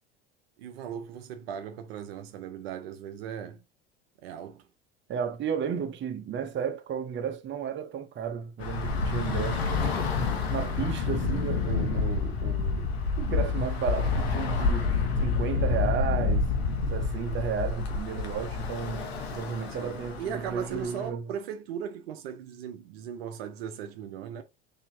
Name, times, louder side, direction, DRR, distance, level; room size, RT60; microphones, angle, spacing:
voice 1, 0.6-3.6 4.2-4.7 19.8-24.4, right 8 dB, 80° right, 0.6 m, -38 dB
voice 2, 5.1-10.1 10.5-16.5 16.9-21.3, right 7 dB, 40° right, 0.9 m, -33 dB
Bus / Traffic noise roadway noise, 8.6-21.1, left 4 dB, 90° left, 1.0 m, -28 dB
4.2 x 2.8 x 2.7 m
hypercardioid pair, 75°, 30 cm